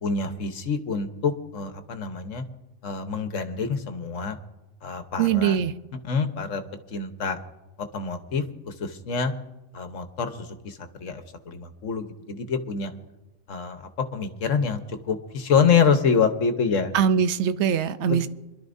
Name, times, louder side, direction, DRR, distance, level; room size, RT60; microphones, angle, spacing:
voice 1, 0.0-2.4 2.8-4.4 4.8-5.6 6.0-6.6 6.9-7.4 7.9-9.3 9.7-12.9 13.5-13.8 14.1-14.8 15.1-16.9 18.1-18.3, left 6 dB, 75° left, 1.4 m, -26 dB
voice 2, 5.2-5.7 16.9-18.3, right 8 dB, 65° right, 0.9 m, -22 dB
26.0 x 12.0 x 2.6 m
omnidirectional pair, 1.3 m